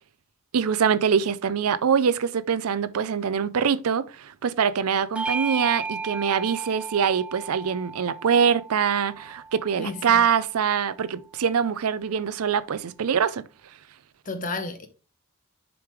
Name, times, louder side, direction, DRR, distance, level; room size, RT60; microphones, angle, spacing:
voice 1, 0.5-13.4, right 7 dB, 80° right, 0.5 m, -24 dB
Bell / Doorbell, 5.1-10.0, right 4 dB, 5° right, 0.4 m, -34 dB
voice 2, 9.8-10.2 14.2-14.9, left 2 dB, 40° left, 1.0 m, -32 dB
6.9 x 5.1 x 3.1 m
head